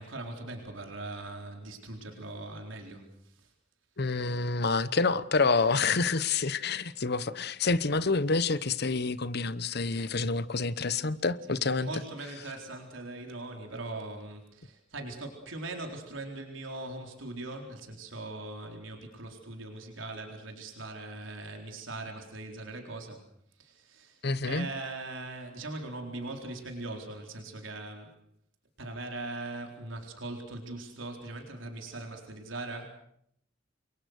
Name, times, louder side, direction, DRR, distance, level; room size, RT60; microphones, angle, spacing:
voice 1, 0.0-3.5 5.6-5.7 11.5-23.3 23.6-28.1 28.8-32.9, right 2 dB, 85° right, 4.1 m, -40 dB
voice 2, 4.0-11.9 24.2-24.7, left 4 dB, 55° left, 1.0 m, -28 dB
28.5 x 23.0 x 6.6 m
head